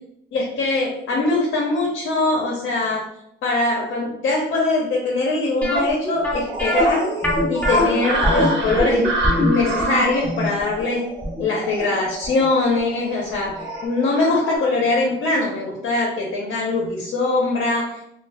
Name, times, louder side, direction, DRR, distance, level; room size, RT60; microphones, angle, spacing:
voice 1, 0.3-3.0 3.4-9.0 9.4-11.0 11.4-13.5 13.8-18.0, left 3 dB, 70° left, -2 dB, 0.7 m, -22 dB
sound 1, 5.6-12.5 12.8-12.9 13.4-13.6 13.8-13.9, equal, 10° left, 0.6 m, -22 dB
sound 2, 6.5-14.6, right 2 dB, 70° right, 0.8 m, -28 dB
2.1 x 2.0 x 3.3 m, 0.77 s
cardioid pair, 90°, 20 cm